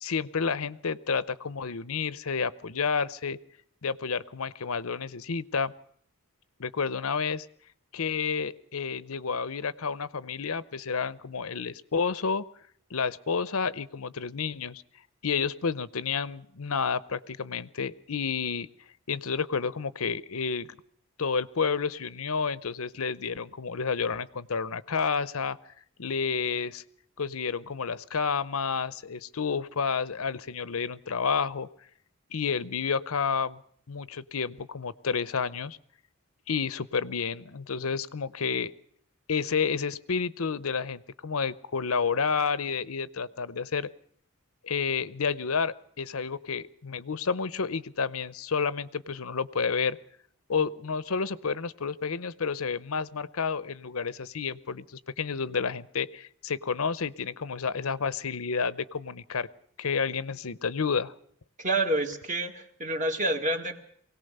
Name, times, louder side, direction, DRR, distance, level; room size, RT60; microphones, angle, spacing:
voice 1, 0.0-3.4 3.8-5.7 6.6-7.5 7.9-12.4 12.9-14.8 15.2-18.7 19.1-20.7 21.2-25.6 26.0-26.8 27.2-31.7 32.3-33.6 33.9-35.8 36.5-38.7 39.3-43.9 44.6-50.0 50.5-59.5 59.8-61.1, left 5 dB, 80° left, 17 dB, 0.8 m, -30 dB
voice 2, 61.6-63.7, right 2 dB, 35° right, 5 dB, 2.2 m, -28 dB
24.0 x 18.0 x 6.7 m, 0.62 s
head